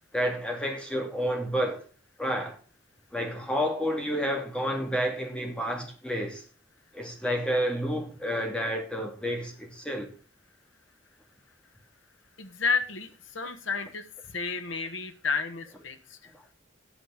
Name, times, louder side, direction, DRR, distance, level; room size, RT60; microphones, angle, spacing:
voice 1, 0.1-1.9 2.2-2.6 3.1-6.4 6.9-10.1 16.3-16.4, equal, 5° left, 2.4 m, -30 dB
voice 2, 12.4-16.3, left 5 dB, 80° left, 1.4 m, -31 dB
9.8 x 9.0 x 5.1 m
head